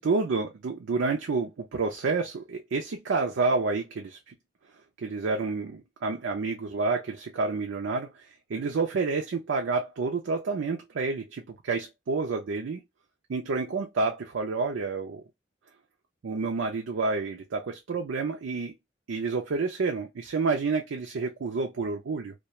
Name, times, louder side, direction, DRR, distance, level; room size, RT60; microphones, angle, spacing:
voice 1, 0.0-4.3 5.0-12.8 13.3-15.2 16.2-18.7 19.1-22.3, right 4 dB, 75° right, 0.4 m, -29 dB
2.3 x 2.2 x 2.8 m
head